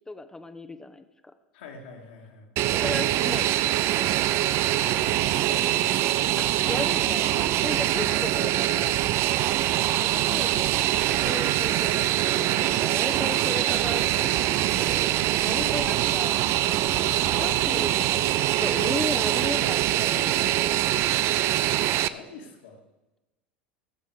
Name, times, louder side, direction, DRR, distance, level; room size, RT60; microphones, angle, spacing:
voice 1, 0.1-1.3 2.8-3.6 6.4-8.9 10.0-10.7 11.2-12.1 12.3-15.2 15.4-16.4 17.4-18.3 18.6-21.4, left 2 dB, 10° left, 9 dB, 1.0 m, -36 dB
voice 2, 1.5-2.5 4.8-5.0 5.5-6.1 7.8-7.9 10.5-10.7 15.5-15.7 17.0-17.3 20.3-20.6 22.1-22.8, left 4 dB, 70° left, 1 dB, 2.4 m, -44 dB
Fixed-wing aircraft airplane, 2.6-22.1, right 14 dB, 50° right, 0.5 m, -24 dB
18.0 x 7.4 x 5.0 m, 1.0 s
hypercardioid pair, 80°, 6 cm